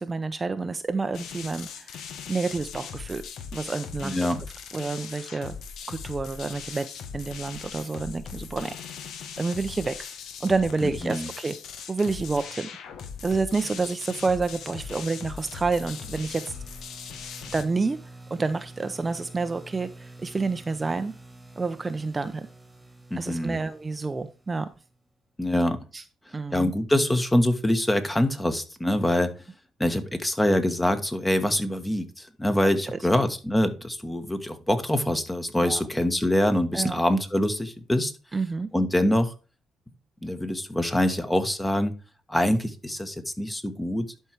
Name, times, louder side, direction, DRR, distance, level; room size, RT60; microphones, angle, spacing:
voice 1, 0.0-2.0 2.3-3.2 3.5-4.2 4.7-5.6 5.9-6.9 7.1-8.7 9.4-10.0 10.4-11.6 11.9-12.7 13.2-16.4 17.5-18.0 18.3-21.1 21.6-22.5 23.2-24.7 25.9-26.0 26.3-26.7 32.6-33.0 35.6-35.8 36.7-37.0 38.3-38.7, right 3 dB, 25° right, 10 dB, 0.6 m, -28 dB
sound 1, 1.1-17.7, left 6 dB, 75° left, 1.2 m, -40 dB
voice 2, 4.0-4.4 10.8-11.3 23.1-23.6 25.4-25.8 26.5-29.3 29.8-38.1 38.7-39.3 40.2-41.9 42.3-44.1, left 1 dB, 10° left, 9 dB, 1.3 m, -24 dB
sound 2, 13.2-25.0, right 2 dB, 5° right, 2.0 m, -49 dB
11.5 x 4.6 x 4.6 m, 0.33 s
cardioid pair, 90°, 0 cm